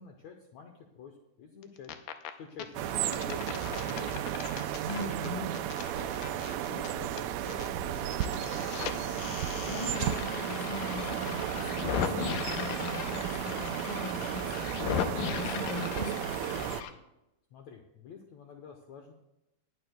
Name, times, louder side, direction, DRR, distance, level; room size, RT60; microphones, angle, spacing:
voice 1, 0.0-1.9 2.4-4.3 5.0-5.6 6.0-8.5 17.5-19.1, left 6 dB, 70° left, 3 dB, 1.9 m, -48 dB
sound 1, 1.6-2.3 2.6-7.7 7.9-16.9, left 8 dB, 85° left, 2.3 m, -37 dB
sound 2, 2.7-16.8, right 11 dB, 85° right, 1.6 m, -34 dB
voice 2, 4.9-5.5 9.2-16.7, left 2 dB, 50° left, 5 dB, 1.9 m, -41 dB
20.5 x 11.0 x 2.3 m, 0.90 s
omnidirectional pair, 3.8 m